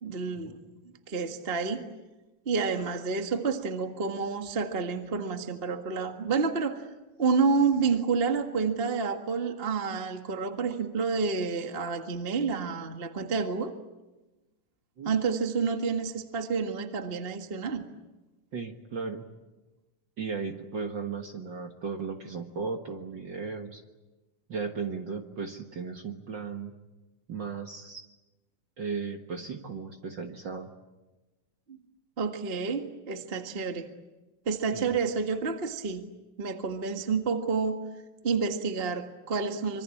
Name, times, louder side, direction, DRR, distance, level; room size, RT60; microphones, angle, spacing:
voice 1, 0.0-0.6 1.1-1.8 2.4-6.8 7.2-13.7 15.0-17.8 32.2-33.9 34.4-36.0 36.4-37.8 38.2-39.8, right 5 dB, 30° right, 6 dB, 1.2 m, -29 dB
voice 2, 18.5-19.2 20.2-23.8 24.5-26.7 27.3-28.0 28.8-30.7 34.7-34.9, right 5 dB, 45° right, 5 dB, 1.7 m, -36 dB
26.0 x 24.5 x 8.6 m, 1.1 s
omnidirectional pair, 3.7 m